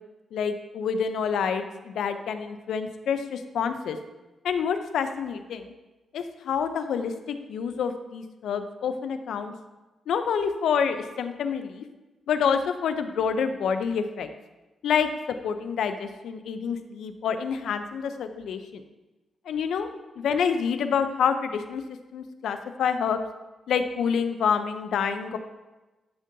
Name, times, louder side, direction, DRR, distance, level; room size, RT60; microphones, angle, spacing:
voice 1, 0.3-4.0 4.4-5.7 6.1-9.5 10.1-11.8 12.3-14.3 14.8-18.8 19.5-21.8 22.1-23.2 23.7-25.4, left 6 dB, 85° left, 9 dB, 0.5 m, -27 dB
11.0 x 3.8 x 2.7 m, 1.1 s
wide cardioid pair, 165°, 0 cm